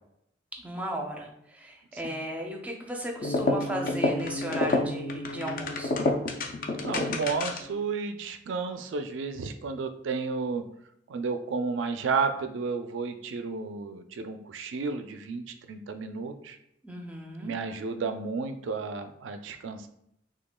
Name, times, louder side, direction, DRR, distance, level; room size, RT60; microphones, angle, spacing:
voice 1, 0.6-6.0 16.8-17.5, right 1 dB, 10° right, 1 dB, 0.5 m, -36 dB
sound 1, 3.2-7.8, left 2 dB, 45° left, 0.4 m, -29 dB
voice 2, 6.8-10.6 11.1-16.6 17.4-19.9, right 4 dB, 90° right, 7 dB, 0.4 m, -32 dB
5.9 x 2.3 x 2.2 m, 0.76 s
head